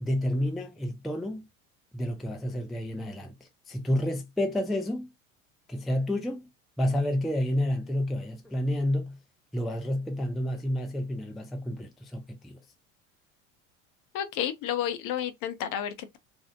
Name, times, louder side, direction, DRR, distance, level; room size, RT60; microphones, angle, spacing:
voice 1, 0.0-1.4 1.9-3.3 3.7-5.1 5.7-6.4 6.8-9.2 9.5-12.6, left 1 dB, ahead, 0.3 m, -29 dB
voice 2, 14.1-16.2, left 10 dB, 55° left, 0.6 m, -31 dB
2.5 x 2.0 x 2.5 m
hypercardioid pair, 75°, 39 cm